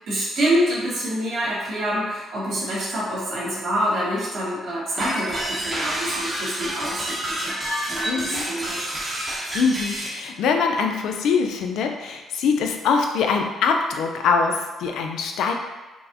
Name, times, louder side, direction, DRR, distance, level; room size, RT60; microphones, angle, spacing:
voice 1, 0.1-7.1 7.4-8.8, equal, 70° right, -6 dB, 1.5 m, -26 dB
sound 1, 5.0-10.2, right 1 dB, 30° right, 0.8 m, -28 dB
voice 2, 8.1-8.5 9.5-15.5, left 5 dB, 80° left, 4 dB, 0.4 m, -23 dB
4.4 x 2.1 x 2.7 m, 1.2 s
cardioid pair, 90°, 0 cm